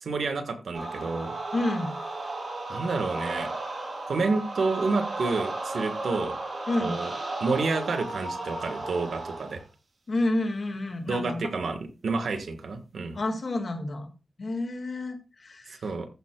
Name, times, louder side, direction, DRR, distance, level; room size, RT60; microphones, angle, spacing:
voice 1, 0.0-1.3 2.7-3.5 4.1-6.3 6.8-7.1 7.4-9.6 11.1-11.8 12.0-13.2 15.7-16.1, right 3 dB, 90° right, 8 dB, 1.6 m, -29 dB
sound 1, 0.7-9.6, right 2 dB, 55° right, 4.2 m, -34 dB
voice 2, 1.5-2.0 6.7-7.0 10.1-11.4 13.1-14.1 14.4-15.8, left 2 dB, 45° left, 6 dB, 1.9 m, -29 dB
14.0 x 9.3 x 2.4 m, 0.31 s
wide cardioid pair, 180°, 0 cm